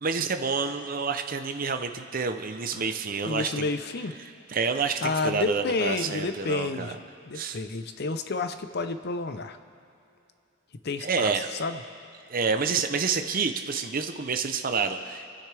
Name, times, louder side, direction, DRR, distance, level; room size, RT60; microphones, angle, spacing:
voice 1, 0.0-3.7 4.5-7.0 7.3-7.6 11.0-11.5 12.3-15.3, right 5 dB, 45° right, 7 dB, 0.7 m, -28 dB
voice 2, 3.2-4.1 5.0-7.0 7.3-9.6 10.8-11.3 11.6-11.8, left 3 dB, 50° left, 9 dB, 0.6 m, -30 dB
29.0 x 9.8 x 3.4 m, 2.7 s
head